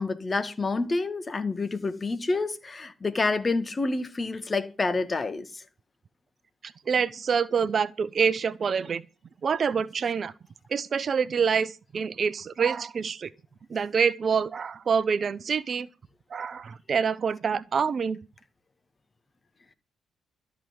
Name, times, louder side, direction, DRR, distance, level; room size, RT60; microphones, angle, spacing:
voice 1, 0.0-5.6, left 3 dB, 35° left, 1.9 m, -28 dB
voice 2, 6.9-9.0 9.4-10.3 10.7-13.3 13.7-15.9 16.3-18.2, right 6 dB, 50° right, 0.7 m, -26 dB
13.5 x 6.1 x 9.8 m
hypercardioid pair, 45°, 0 cm